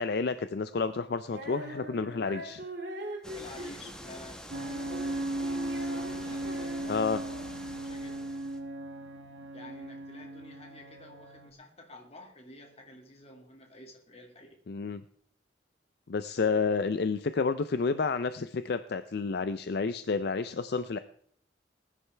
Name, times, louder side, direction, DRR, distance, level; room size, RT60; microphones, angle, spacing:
voice 1, 0.0-2.6 6.9-7.2 14.7-15.0 16.1-21.0, left 4 dB, 55° left, 11 dB, 0.4 m, -30 dB
Female singing, 1.2-7.7, right 1 dB, 55° right, 2.4 m, -43 dB
sound 1, 3.2-8.6, equal, 5° left, 1.1 m, -46 dB
voice 2, 3.3-7.0 7.8-8.4 9.5-14.6, left 1 dB, 35° left, 3 dB, 2.1 m, -50 dB
sound 2, 4.5-11.5, right 1 dB, 80° right, 1.2 m, -37 dB
20.0 x 9.9 x 3.3 m, 0.63 s
head